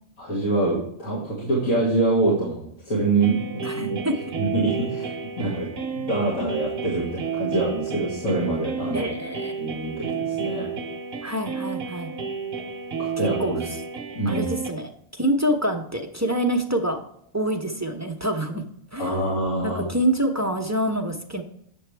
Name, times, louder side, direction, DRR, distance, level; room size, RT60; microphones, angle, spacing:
voice 1, 0.2-4.0 4.4-9.1 9.6-10.7 13.0-13.6 14.1-14.4 19.0-19.8, right 2 dB, 80° left, -6 dB, 2.5 m, -25 dB
sound 1, 3.2-14.7, right 6 dB, 50° right, 0.9 m, -31 dB
voice 2, 3.6-4.1 8.9-9.6 11.2-12.1 13.4-13.5 14.3-14.9 15.2-17.0 17.3-18.6 18.9-19.1 19.6-21.4, right 1 dB, 20° right, 3 dB, 0.5 m, -26 dB
8.7 x 6.8 x 3.3 m, 0.72 s
omnidirectional pair, 1.4 m